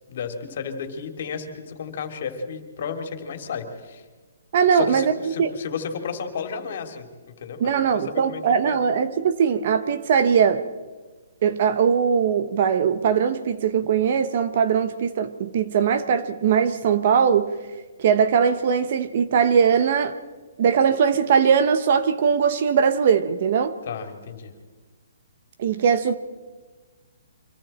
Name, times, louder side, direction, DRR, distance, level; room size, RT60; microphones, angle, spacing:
voice 1, 0.1-4.0 4.7-7.1 7.4-8.8 23.9-24.5, left 6 dB, 45° left, 3.0 m, -33 dB
voice 2, 4.5-5.5 7.6-10.6 11.4-17.5 18.0-20.1 20.6-23.7 25.6-26.2, right 7 dB, 40° right, 1.2 m, -20 dB
29.5 x 25.0 x 4.4 m
hypercardioid pair, 170°, 0 cm